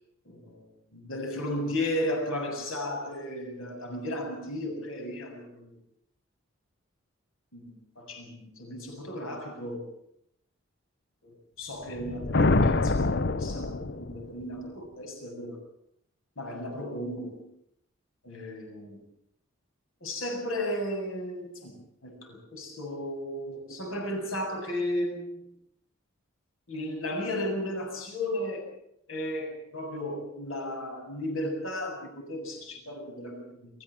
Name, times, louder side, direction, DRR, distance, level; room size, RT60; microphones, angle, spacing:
voice 1, 0.3-5.7 7.5-9.9 11.2-15.6 16.4-17.5 18.2-19.0 20.0-25.4 26.7-28.7 29.1-33.7, left 1 dB, 75° left, 2 dB, 7.6 m, -35 dB
sound 1, 11.9-14.4, left 3 dB, 50° left, 0.7 m, -25 dB
24.0 x 15.0 x 7.8 m, 0.73 s
head